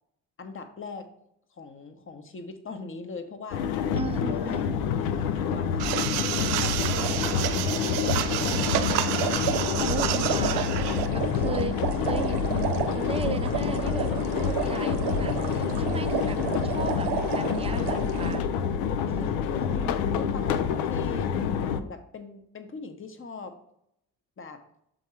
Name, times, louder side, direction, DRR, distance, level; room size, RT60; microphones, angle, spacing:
voice 1, 0.4-1.1 1.5-3.7 4.4-8.6 19.2-21.4 21.7-23.6 24.4-24.6, left 4 dB, 25° left, 7 dB, 1.0 m, -41 dB
sound 1, 3.5-21.8, left 7 dB, 65° left, 0.6 m, -27 dB
voice 2, 3.9-4.7 9.7-10.7 11.1-12.6 12.9-16.4 16.6-18.5 19.1-19.3 19.8-19.9, right 5 dB, 15° right, 9 dB, 0.5 m, -36 dB
sound 2, 5.8-11.1, right 12 dB, 75° right, 0.5 m, -30 dB
sound 3, 6.8-18.4, right 6 dB, 60° right, 0.9 m, -32 dB
7.1 x 3.7 x 4.3 m, 0.75 s
figure-of-eight pair, 45°, 48 cm